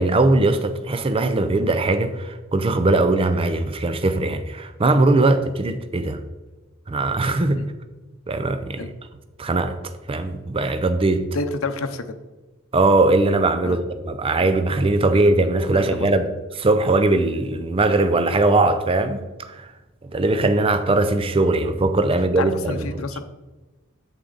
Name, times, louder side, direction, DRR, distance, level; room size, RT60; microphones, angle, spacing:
voice 1, 0.0-6.2 6.9-7.6 8.3-8.8 9.4-9.8 10.1-11.3 12.7-16.3 16.6-19.2 19.5-19.7 20.1-22.7, right 2 dB, 25° right, 0.5 m, -20 dB
voice 2, 11.3-12.2 13.6-13.8 14.4-14.5 15.1-16.1 22.1-23.2, left 3 dB, 80° left, 0.7 m, -30 dB
8.3 x 7.3 x 3.9 m
head